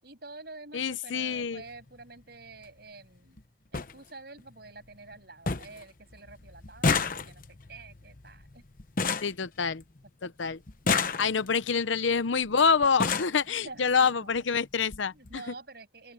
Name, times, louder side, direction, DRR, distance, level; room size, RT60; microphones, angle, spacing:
voice 1, 0.0-3.4 3.7-8.6 10.2-10.3 10.8-11.5 13.5-14.3 14.8-16.1, right 3 dB, 55° right, 7.8 m, -48 dB
voice 2, 0.7-1.6 9.2-9.8 10.4-10.6 11.2-15.4, left 5 dB, 85° left, 0.8 m, -26 dB
sound 1, 1.6-1.8 3.0-3.1 3.4-3.5 3.7-3.9 4.4-4.9 5.1-5.2 5.5-5.8 6.1-10.1 10.7-11.6 12.4-12.5 12.8-13.4 14.4-14.5 14.8-15.0 15.3-15.4, left 4 dB, 45° left, 0.9 m, -30 dB
open air
head